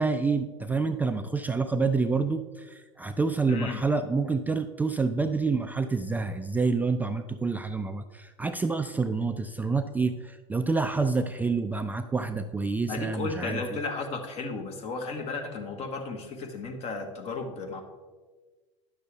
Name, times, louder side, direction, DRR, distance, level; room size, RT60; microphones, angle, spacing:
voice 1, 0.0-13.6, right 4 dB, 10° right, 7 dB, 0.3 m, -28 dB
voice 2, 3.5-3.8 12.9-17.8, left 3 dB, 40° left, 5 dB, 1.3 m, -34 dB
10.0 x 6.6 x 3.4 m, 1.3 s
hypercardioid pair, 90°, 16 cm